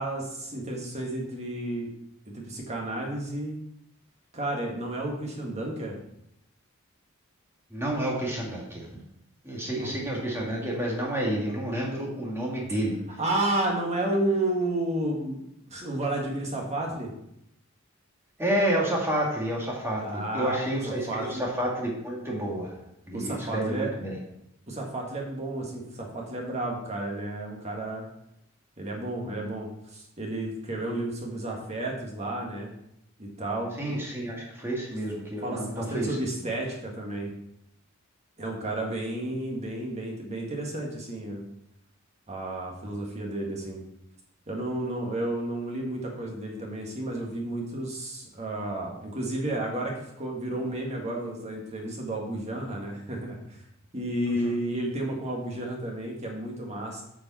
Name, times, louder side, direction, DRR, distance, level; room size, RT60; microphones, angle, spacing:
voice 1, 0.0-1.9 2.3-3.6 4.3-6.0 9.8-9.9 13.2-15.4 15.7-17.1 19.9-21.5 23.1-23.9 24.7-28.0 28.8-32.7 33.2-33.7 35.4-37.3 38.4-41.4 42.3-43.8 44.5-53.6 53.9-57.0, right 1 dB, 30° right, -1 dB, 1.8 m, -32 dB
voice 2, 7.7-9.0 9.4-13.0 18.4-22.8 23.1-24.2 33.8-36.5 54.3-54.6, right 1 dB, 10° right, -3 dB, 2.1 m, -30 dB
9.2 x 5.1 x 4.2 m, 0.79 s
head